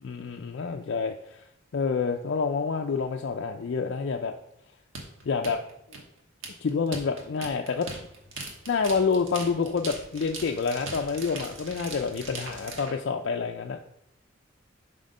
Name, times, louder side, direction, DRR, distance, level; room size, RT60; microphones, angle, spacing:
voice 1, 0.0-1.4 1.7-4.3 5.3-5.6 6.6-7.9 8.7-13.8, left 5 dB, 55° left, 3 dB, 0.4 m, -28 dB
sound 1, 4.9-12.9, right 3 dB, 75° right, 1.4 m, -40 dB
7.8 x 3.6 x 5.3 m, 0.77 s
head